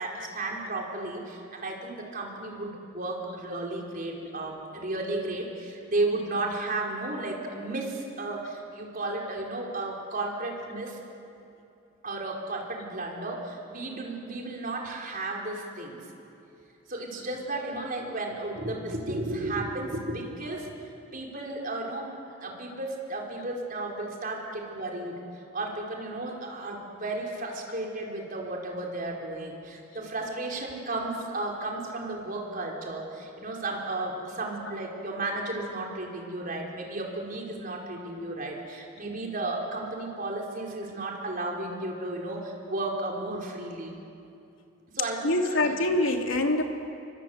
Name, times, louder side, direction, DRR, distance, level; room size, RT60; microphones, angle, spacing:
voice 1, 0.0-11.0 12.0-16.1 16.9-22.1 22.4-25.2 25.5-44.0 44.9-45.7, right 2 dB, 40° right, -1 dB, 4.8 m, -34 dB
voice 2, 45.2-46.6, left 2 dB, 70° left, 3 dB, 2.9 m, -24 dB
28.5 x 24.5 x 8.1 m, 2.7 s
head